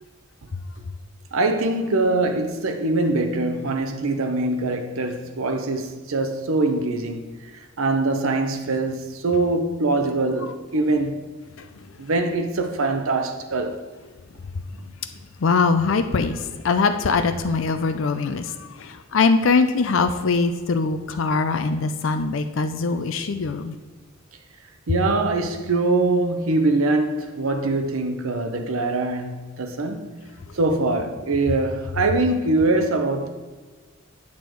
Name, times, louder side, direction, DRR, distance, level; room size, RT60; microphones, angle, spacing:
voice 1, 1.3-11.1 12.0-13.8 24.9-30.1 30.5-33.3, right 2 dB, 90° right, 0.7 m, -23 dB
voice 2, 15.4-23.7, left 4 dB, 70° left, 0.5 m, -22 dB
8.5 x 6.3 x 4.6 m
head